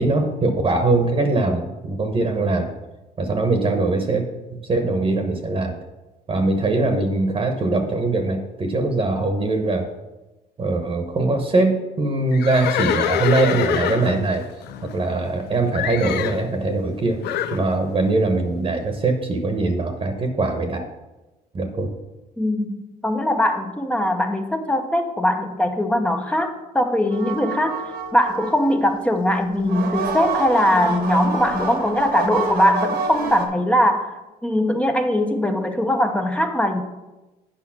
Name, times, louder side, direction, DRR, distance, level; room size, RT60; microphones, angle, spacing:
voice 1, 0.0-2.7 3.2-5.7 6.3-9.9 10.6-14.4 14.8-17.2 17.5-20.8 21.5-21.9, right 2 dB, 35° right, 5 dB, 1.1 m, -22 dB
Livestock farm animals working animals, 12.3-15.4 15.7-16.4 17.2-17.6, left 10 dB, 75° left, 0.6 m, -25 dB
voice 2, 22.4-22.8 23.0-36.8, left 1 dB, 5° left, 5 dB, 0.8 m, -21 dB
sound 1, 27.1-28.9 29.6-33.5, right 5 dB, 70° right, 1.4 m, -28 dB
8.7 x 5.3 x 5.8 m, 1.1 s
cardioid pair, 110°, 17 cm